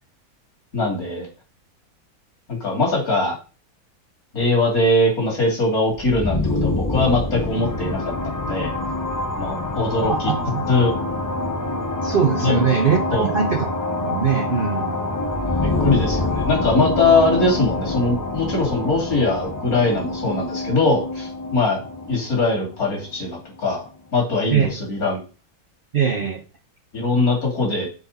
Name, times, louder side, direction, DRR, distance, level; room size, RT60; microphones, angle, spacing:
voice 1, 0.7-1.3 2.5-3.3 4.3-8.7 9.4-10.1 10.7-10.9 12.4-12.6 13.1-13.3 15.6-21.8 22.1-23.8 24.1-25.2 26.9-27.9, left 2 dB, 70° left, -1 dB, 3.3 m, -21 dB
sound 1, 5.9-23.6, left 2 dB, 25° left, 0.4 m, -26 dB
voice 2, 10.1-10.7 12.0-13.7 14.0-15.0 24.5-24.8 25.9-26.4, right 6 dB, 45° right, 3 dB, 0.8 m, -21 dB
6.9 x 4.7 x 4.0 m, 0.34 s
omnidirectional pair, 1.6 m